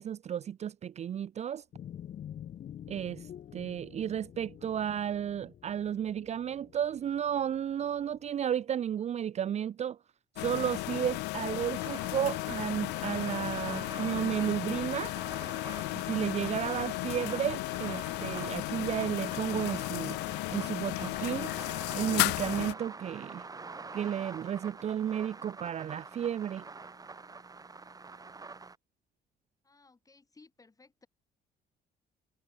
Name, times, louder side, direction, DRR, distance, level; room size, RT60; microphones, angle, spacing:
voice 1, 0.0-1.6 2.9-3.3 3.5-10.0 10.4-15.2 16.0-20.2 20.5-21.5 21.9-23.4 23.9-26.6, right 9 dB, 40° right, 0.6 m, -33 dB
sound 1, 1.7-8.3, left 10 dB, 50° left, 1.1 m, -48 dB
sound 2, 10.4-22.7, left 21 dB, 90° left, 0.6 m, -34 dB
sound 3, 11.2-28.8, right 4 dB, 20° right, 2.0 m, -46 dB
voice 2, 29.6-31.1, left 3 dB, 20° left, 6.3 m, -60 dB
cardioid pair, 110°, 17 cm